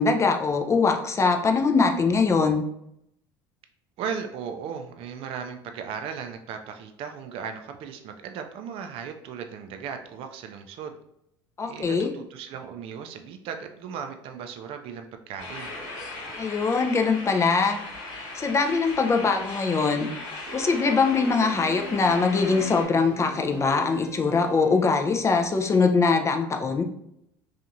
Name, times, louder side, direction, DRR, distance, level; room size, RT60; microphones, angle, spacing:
voice 1, 0.0-2.6 11.6-12.1 16.4-17.8 18.3-20.1 20.5-26.8, left 4 dB, 25° left, 4 dB, 0.4 m, -22 dB
voice 2, 4.0-11.0 11.6-15.7, right 7 dB, 50° right, 6 dB, 0.3 m, -36 dB
sound 1, 15.4-22.9, left 2 dB, 65° left, 1.3 m, -38 dB
sound 2, 20.5-25.7, right 5 dB, 25° right, 0.8 m, -41 dB
2.8 x 2.4 x 2.5 m, 0.76 s
hypercardioid pair, 75°, 12 cm